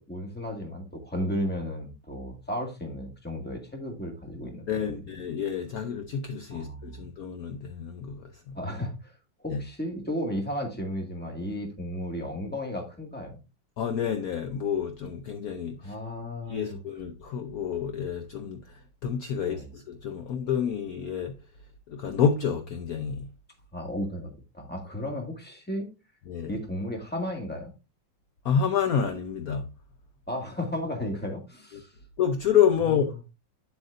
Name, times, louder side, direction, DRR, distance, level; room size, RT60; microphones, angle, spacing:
voice 1, 0.0-5.0 6.5-7.0 8.5-9.1 9.4-13.4 15.8-16.8 19.4-19.7 23.7-25.9 26.5-27.7 30.3-31.9 32.9-33.0, left 1 dB, 5° left, 1.8 m, -34 dB
voice 2, 4.4-8.5 9.5-9.6 13.8-15.9 16.5-21.3 21.9-23.3 26.3-26.6 28.4-29.6 32.2-33.2, left 7 dB, 60° left, 1.1 m, -28 dB
9.3 x 7.7 x 2.6 m
omnidirectional pair, 2.0 m